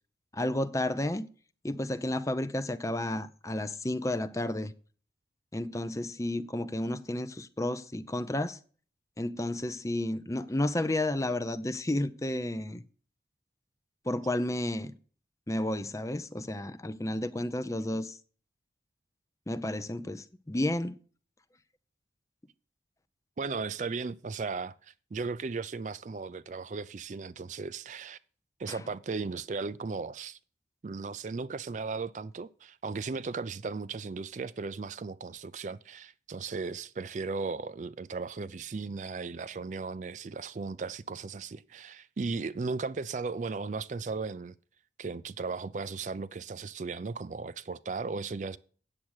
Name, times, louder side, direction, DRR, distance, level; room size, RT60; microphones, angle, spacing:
voice 1, 0.3-1.3 1.6-4.7 5.5-8.6 9.2-12.8 14.1-14.9 15.5-18.2 19.5-21.0 28.7-28.8, left 1 dB, 20° left, 0.6 m, -32 dB
voice 2, 23.4-28.2 28.6-30.4 30.8-44.5 45.0-48.6, right 4 dB, 40° right, 0.4 m, -36 dB
8.8 x 7.5 x 6.4 m
head